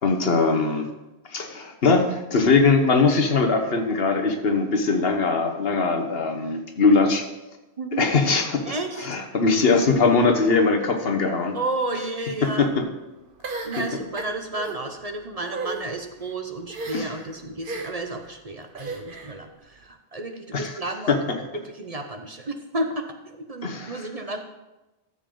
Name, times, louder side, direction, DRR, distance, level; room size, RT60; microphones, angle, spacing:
voice 1, 0.0-0.9 1.3-7.2 8.0-8.6 9.0-11.6 12.4-12.8 16.9-17.1 20.5-20.7 21.1-21.2 23.6-24.0, left 4 dB, 70° left, 6 dB, 1.3 m, -21 dB
voice 2, 7.8-8.1 8.6-9.1 11.5-12.7 13.6-21.2 21.6-24.4, right 2 dB, 40° right, 5 dB, 0.8 m, -32 dB
sound 1, 13.4-14.8 15.4-15.8 16.7-17.2 17.6-18.1 18.7-19.3, right 3 dB, 55° right, 1.2 m, -33 dB
13.5 x 7.3 x 3.8 m, 1.0 s
omnidirectional pair, 1.1 m